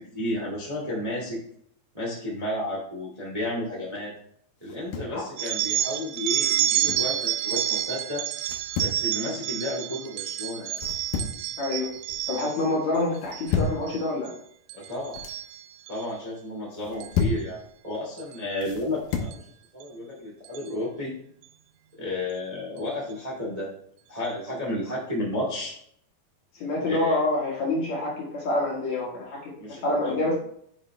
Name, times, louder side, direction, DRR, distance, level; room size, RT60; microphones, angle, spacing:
voice 1, 0.0-1.4 1.9-4.1 4.6-8.2 8.8-10.8 14.7-15.2 15.9-19.4 19.7-21.1 22.0-23.7 24.1-25.7 26.8-27.2 29.6-30.3, left 1 dB, 40° right, -5 dB, 0.5 m, -32 dB
sound 1, 4.6-5.2 6.5-7.1 8.4-9.0 10.7-11.5 11.8-12.3 13.2-13.8 14.9-15.4 16.7-17.5 18.6-19.4, left 5 dB, 75° left, 2.4 m, -31 dB
sound 2, 5.4-12.7 13.2-13.6 13.9-14.3 14.7-16.0 17.0-17.2 18.2-18.4 19.3-19.4 19.8-19.9 20.4-20.7, right 12 dB, 85° right, 2.6 m, -29 dB
voice 2, 11.6-11.9 12.3-14.3 26.5-30.4, left 2 dB, 55° left, -3 dB, 2.1 m, -27 dB
9.2 x 5.6 x 3.2 m, 0.68 s
omnidirectional pair, 4.8 m